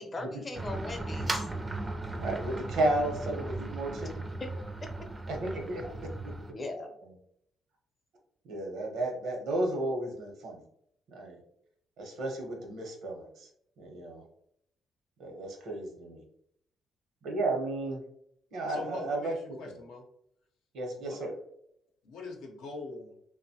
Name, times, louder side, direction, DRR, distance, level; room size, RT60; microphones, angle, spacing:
voice 1, 0.0-1.5 4.4-4.5 5.5-5.9 6.5-6.9, left 2 dB, 30° left, 4 dB, 0.5 m, -40 dB
sound 1, 0.5-6.5, right 2 dB, 25° right, 0.4 m, -37 dB
voice 2, 2.2-4.3 5.3-6.3 7.0-7.1 8.4-10.6 11.1-11.4 12.0-13.5 13.8-14.2 15.2-16.2 17.2-18.0 18.5-19.3 19.7-19.8 20.7-21.3, right 2 dB, 80° right, 1 dB, 0.8 m, -33 dB
voice 3, 18.7-20.0 21.0-21.2 22.0-23.1, left 3 dB, 85° left, 1 dB, 0.6 m, -42 dB
2.9 x 2.1 x 2.7 m, 0.72 s
cardioid pair, 90°, 0 cm